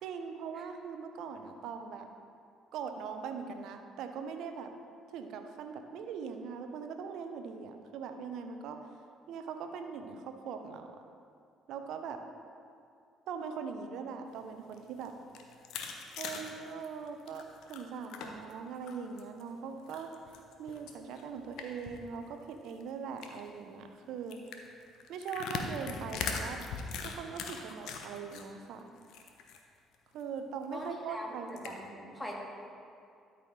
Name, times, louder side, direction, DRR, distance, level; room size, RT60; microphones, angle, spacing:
voice 1, 0.0-2.1 2.7-4.7 5.1-8.8 9.3-10.9 11.7-12.2 13.3-15.1 16.2-20.1 20.6-24.4 25.1-26.6 27.0-28.8 30.1-32.2, right 6 dB, 65° right, 6 dB, 0.7 m, -41 dB
sound 1, 14.6-18.5 18.9-19.4 19.9-22.0 22.3-22.4 22.6-22.8 23.2-23.5 24.3-28.4 28.8-29.6 29.9-30.0 30.4-30.5 31.5-31.7, left 5 dB, 65° left, 0.7 m, -40 dB
voice 2, 30.7-31.7 32.2-32.4, left 1 dB, 20° left, -2 dB, 2.0 m, -41 dB
12.5 x 5.5 x 3.3 m, 2.4 s
hypercardioid pair, 50°, 0 cm